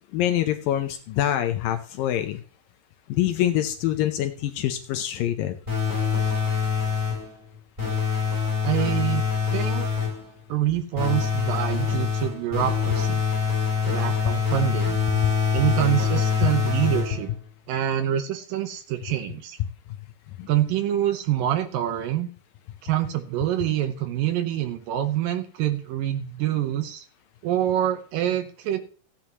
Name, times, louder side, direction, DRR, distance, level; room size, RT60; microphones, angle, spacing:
voice 1, 0.1-2.4 3.1-5.6 20.4-20.5, left 12 dB, 75° left, 8 dB, 2.2 m, -25 dB
sound 1, 5.7-7.3 7.8-10.3 11.0-17.4, left 6 dB, 10° right, 7.2 m, -24 dB
voice 2, 8.6-9.2 9.5-9.8 10.5-13.2 13.8-15.0 15.5-17.3 17.7-19.6 20.5-22.3 22.8-27.1 27.4-28.8, right 12 dB, 75° right, 8 dB, 2.4 m, -26 dB
15.0 x 10.0 x 2.9 m, 0.41 s
omnidirectional pair, 4.5 m